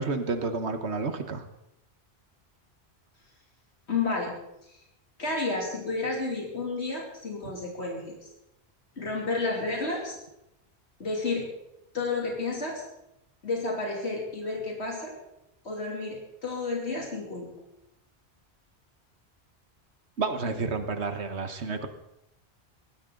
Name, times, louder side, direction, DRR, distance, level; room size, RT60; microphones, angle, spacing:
voice 1, 0.0-1.5 20.2-21.9, right 4 dB, 80° right, 8 dB, 1.6 m, -30 dB
voice 2, 3.9-4.3 4.6-4.7 5.2-8.3 9.0-10.1 11.0-11.5 11.9-12.9 13.4-15.1 15.6-17.5, left 3 dB, 80° left, -1 dB, 3.2 m, -31 dB
18.0 x 15.0 x 3.9 m, 0.84 s
omnidirectional pair, 1.1 m